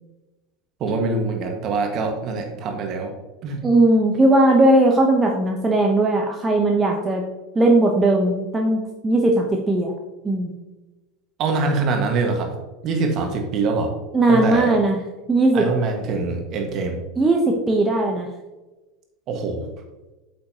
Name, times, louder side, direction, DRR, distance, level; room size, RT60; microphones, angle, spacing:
voice 1, 0.8-3.1 3.4-3.6 11.4-12.5 12.8-13.9 14.3-14.7 15.5-17.0 19.3-19.6, right 3 dB, 40° right, 3 dB, 1.7 m, -24 dB
voice 2, 3.6-7.2 7.5-9.9 10.2-10.5 14.1-15.0 15.3-15.7 17.2-18.3, right 2 dB, 15° right, 1 dB, 1.0 m, -18 dB
8.5 x 7.6 x 3.0 m, 1.1 s
figure-of-eight pair, 80°, 0 cm